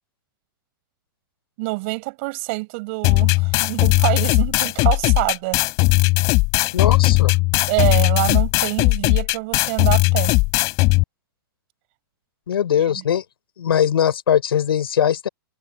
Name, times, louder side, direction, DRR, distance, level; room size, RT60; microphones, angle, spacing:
voice 1, 1.6-5.6 7.7-10.4 12.9-13.0, right 27 dB, 35° right, 7.4 m, -25 dB
sound 1, 3.0-11.0, left 25 dB, 25° left, 6.7 m, -18 dB
voice 2, 6.7-7.4 12.5-13.2 13.6-15.3, left 9 dB, 85° left, 7.6 m, -20 dB
hypercardioid pair, 175°, 12 cm